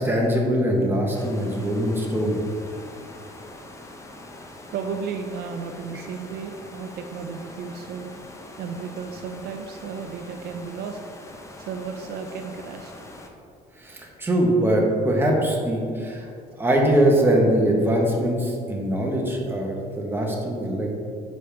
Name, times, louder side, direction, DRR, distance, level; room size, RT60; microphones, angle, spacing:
voice 1, 0.0-2.4 5.9-6.0 13.8-16.3 16.6-20.9, right 1 dB, 15° right, -1 dB, 1.1 m, -22 dB
sound 1, 1.1-13.3, left 1 dB, 15° left, 0.7 m, -43 dB
voice 2, 4.7-8.1 8.6-11.0 11.7-12.9, right 6 dB, 70° right, 6 dB, 0.4 m, -34 dB
6.6 x 5.1 x 3.4 m, 2.4 s
cardioid pair, 110°, 17 cm